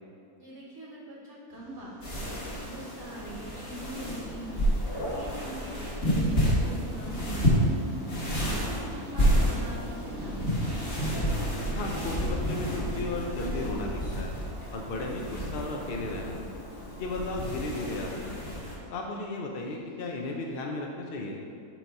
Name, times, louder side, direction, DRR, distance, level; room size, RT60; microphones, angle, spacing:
voice 1, 0.4-7.8 8.3-10.5, right 1 dB, 50° right, -5 dB, 1.1 m, -43 dB
sound 1, 1.5-18.8 19.1-19.4 19.7-19.8 20.0-20.2 20.5-20.6, equal, 75° right, 1.9 m, -45 dB
sound 2, 2.0-18.8, equal, 40° left, 1.5 m, -30 dB
voice 2, 11.7-12.7 12.9-14.4 14.7-16.4 17.0-18.4 18.9-21.4, left 2 dB, 70° left, 0 dB, 0.5 m, -35 dB
6.0 x 4.0 x 4.6 m, 2.4 s
omnidirectional pair, 1.7 m